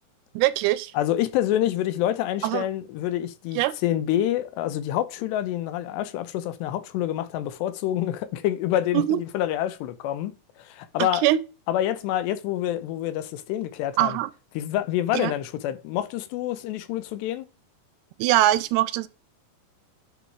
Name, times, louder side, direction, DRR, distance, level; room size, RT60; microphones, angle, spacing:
voice 1, 0.4-0.9 2.4-2.7 3.6-3.7 8.9-9.2 11.2-11.4 14.0-14.3 15.1-15.3 18.2-19.1, right 14 dB, 85° right, 2.5 m, -22 dB
voice 2, 0.9-10.3 10.6-11.2 11.7-14.2 14.6-17.5, left 12 dB, 90° left, 3.1 m, -27 dB
10.5 x 4.0 x 4.6 m
omnidirectional pair, 4.8 m